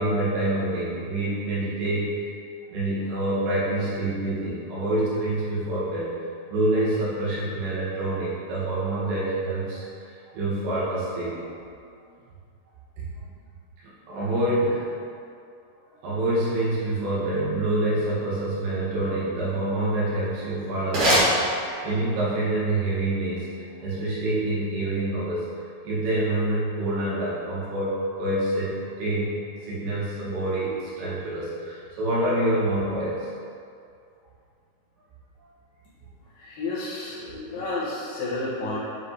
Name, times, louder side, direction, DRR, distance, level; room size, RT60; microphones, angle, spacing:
voice 1, 0.0-2.1 2.7-6.1 6.5-11.5 13.0-13.1 14.1-14.9 16.0-25.5 25.9-29.4 29.6-33.3, right 1 dB, 80° right, -9 dB, 4.6 m, -26 dB
sound 1, 20.0-22.1, equal, 55° right, 2.3 m, -25 dB
voice 2, 36.4-38.8, left 2 dB, 60° left, -8 dB, 3.0 m, -31 dB
11.0 x 5.3 x 3.2 m, 2.4 s
omnidirectional pair, 5.8 m